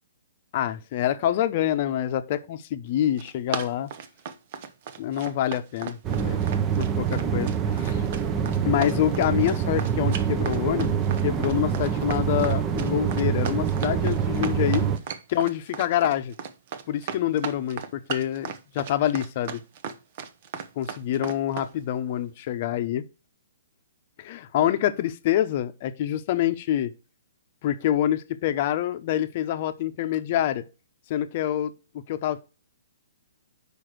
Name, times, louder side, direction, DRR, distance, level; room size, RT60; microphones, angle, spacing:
voice 1, 0.5-3.9 5.0-6.4 7.0-8.0 8.6-10.9 11.2-14.9 15.3-16.3 16.9-19.6 20.8-23.0 24.2-26.9 27.6-30.6 31.1-31.7 32.1-32.4, left 11 dB, 45° left, 0.8 m, -26 dB
Run, 3.0-21.7, right 7 dB, 45° right, 0.8 m, -36 dB
sound 1, 6.0-15.0, right 7 dB, 25° right, 0.7 m, -25 dB
5.0 x 4.9 x 6.2 m
hypercardioid pair, 135°, 0 cm